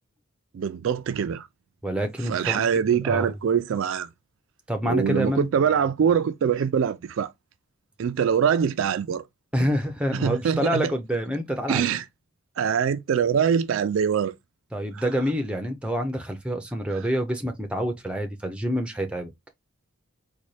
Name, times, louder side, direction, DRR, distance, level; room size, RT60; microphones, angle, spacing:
voice 1, 0.5-1.5 2.3-4.1 4.8-7.3 8.0-9.2 10.1-10.9 11.7-12.0 12.6-14.3 14.9-15.0, right 7 dB, 60° right, 0.3 m, -23 dB
voice 2, 1.8-2.7 3.0-3.4 4.7-5.5 9.5-11.8 14.7-19.3, equal, 5° right, 0.5 m, -27 dB
4.0 x 2.2 x 3.1 m
head